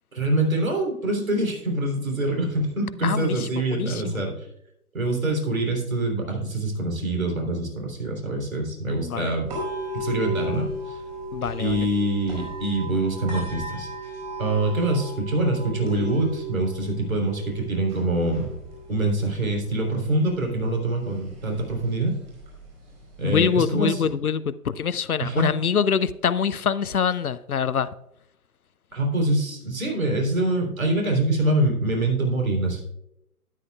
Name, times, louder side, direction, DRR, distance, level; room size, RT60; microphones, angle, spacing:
voice 1, 0.1-4.5 4.9-9.5 9.9-11.0 11.6-13.9 14.4-18.5 18.9-22.1 23.2-24.1 25.2-25.5 28.9-32.8, right 2 dB, 60° right, 2 dB, 3.4 m, -25 dB
voice 2, 3.0-3.4 3.7-4.2 9.0-9.3 11.3-11.9 23.2-27.9, left 7 dB, 70° left, 16 dB, 0.6 m, -24 dB
sound 1, 9.5-23.5, right 1 dB, 30° right, 4.3 m, -36 dB
13.0 x 10.0 x 2.3 m, 0.81 s
figure-of-eight pair, 140°, 46 cm